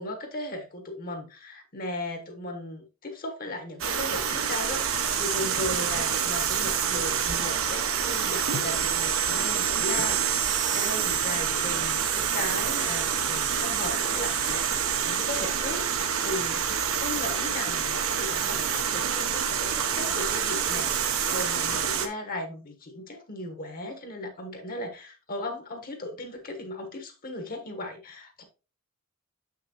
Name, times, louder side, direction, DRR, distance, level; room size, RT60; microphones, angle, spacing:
voice 1, 0.0-16.6 17.0-28.4, left 1 dB, 40° left, 1.2 m, -37 dB
sound 1, 3.8-22.1, right 7 dB, 65° right, 0.9 m, -27 dB
6.8 x 5.9 x 3.0 m
head